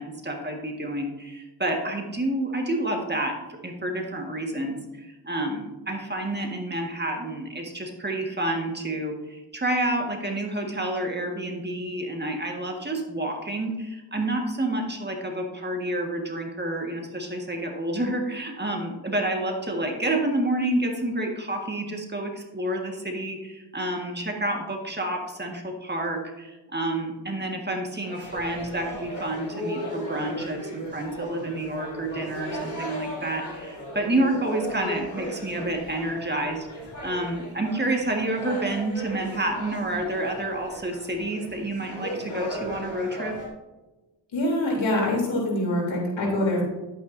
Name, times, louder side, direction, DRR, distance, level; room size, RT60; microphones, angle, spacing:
voice 1, 0.0-3.3 3.6-36.7 37.0-43.3, right 1 dB, 25° right, 2 dB, 1.6 m, -29 dB
sound 1, 28.0-43.5, equal, 40° left, 3.4 m, -36 dB
voice 2, 44.3-46.6, left 1 dB, 80° left, -2 dB, 3.4 m, -24 dB
10.5 x 9.0 x 2.7 m, 1.1 s
cardioid pair, 75°, 45 cm